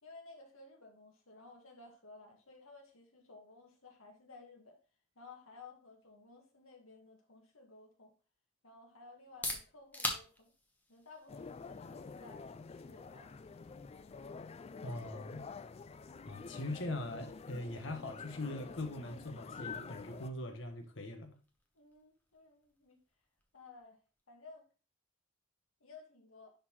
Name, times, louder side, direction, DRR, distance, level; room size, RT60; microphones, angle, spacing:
voice 1, 0.0-4.8 5.2-8.1 8.6-10.5 10.9-13.3 21.7-23.0 23.5-24.0 24.3-24.7 25.8-26.5, left 3 dB, 85° left, 1.9 m, -56 dB
sound 1, 9.1-24.8, left 1 dB, 10° left, 1.1 m, -49 dB
sound 2, 11.3-20.3, left 5 dB, 30° left, 0.3 m, -48 dB
voice 2, 14.8-15.5 16.2-21.3, left 1 dB, 65° left, 1.4 m, -41 dB
10.5 x 4.0 x 3.1 m
head